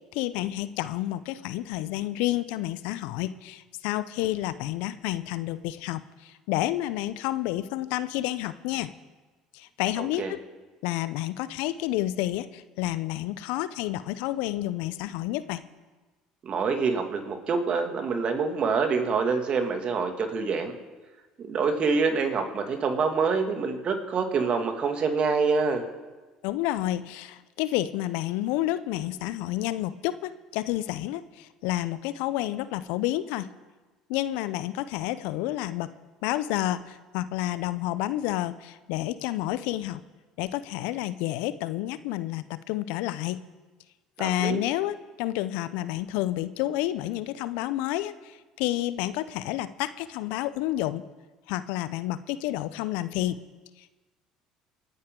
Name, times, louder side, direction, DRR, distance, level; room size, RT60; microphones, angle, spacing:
voice 1, 0.1-8.9 9.5-10.4 10.8-15.6 26.4-33.5 34.1-35.9 36.2-40.0 40.4-43.4 44.2-51.0 51.5-53.4 53.8-53.9, left 15 dB, 70° left, 15 dB, 0.6 m, -30 dB
voice 2, 10.0-10.3 16.4-20.7 21.4-25.8 44.2-44.6, right 5 dB, 45° right, 5 dB, 2.2 m, -26 dB
26.5 x 9.5 x 3.8 m, 1.3 s
hypercardioid pair, 65°, 3 cm